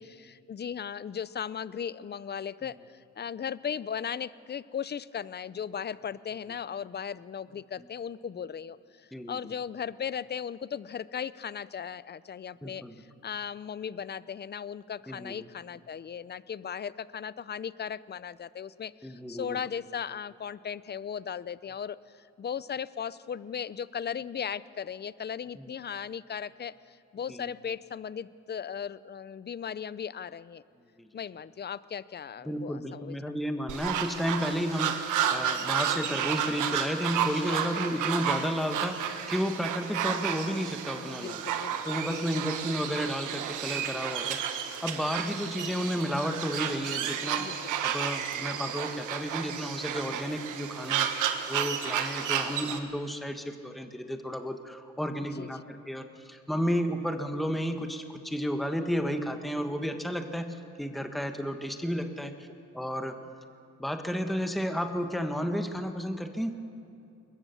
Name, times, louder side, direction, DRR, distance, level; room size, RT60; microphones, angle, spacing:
voice 1, 0.0-8.8 9.3-30.6 31.1-33.1 41.1-42.4 47.3-47.6 47.9-48.0 55.4-55.5, left 7 dB, 35° left, 18 dB, 0.6 m, -37 dB
voice 2, 12.6-12.9 15.1-15.3 19.0-19.6 25.6-25.7 27.3-27.4 31.0-31.1 32.4-41.4 41.9-47.6 47.8-62.5 62.7-63.2 63.8-66.5, equal, ahead, 6 dB, 1.4 m, -32 dB
sound 1, 33.7-52.8, right 9 dB, 85° right, 1.6 m, -32 dB
22.0 x 20.5 x 7.1 m, 2.6 s
cardioid pair, 90°, 30 cm